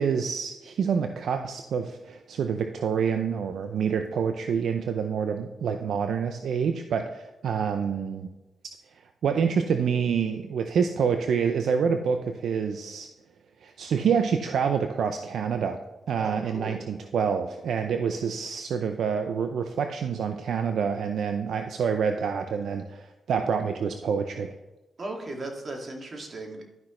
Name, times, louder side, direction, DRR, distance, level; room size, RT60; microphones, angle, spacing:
voice 1, 0.0-8.3 9.2-13.1 13.6-15.8 16.1-24.5, right 6 dB, 80° right, 7 dB, 0.6 m, -27 dB
voice 2, 16.2-16.8 25.0-26.6, right 2 dB, 50° right, 1 dB, 2.3 m, -37 dB
12.0 x 6.0 x 3.2 m, 1.1 s
cardioid pair, 60°, 0 cm